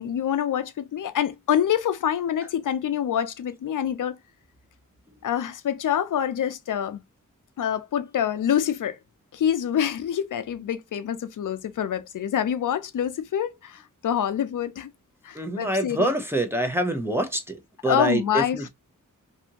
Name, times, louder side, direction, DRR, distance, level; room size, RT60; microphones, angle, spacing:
voice 1, 0.0-4.1 5.2-7.0 7.6-9.0 9.3-14.9 15.2-16.1 17.9-18.6, left 9 dB, 80° left, 0.5 m, -26 dB
voice 2, 15.3-18.7, right 1 dB, 10° right, 0.5 m, -26 dB
2.7 x 2.5 x 2.7 m
wide cardioid pair, 130°, 31 cm